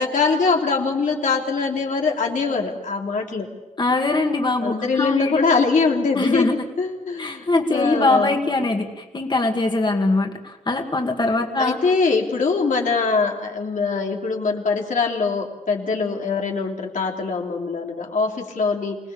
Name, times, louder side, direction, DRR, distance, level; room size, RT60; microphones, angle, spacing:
voice 1, 0.0-3.5 4.6-6.5 6.8-8.3 11.6-19.0, left 4 dB, 90° left, 0 dB, 3.3 m, -22 dB
voice 2, 3.8-5.4 6.1-6.5 7.2-11.8, left 2 dB, 35° left, 3 dB, 2.0 m, -22 dB
26.5 x 19.0 x 7.1 m, 1.1 s
wide cardioid pair, 125°, 13 cm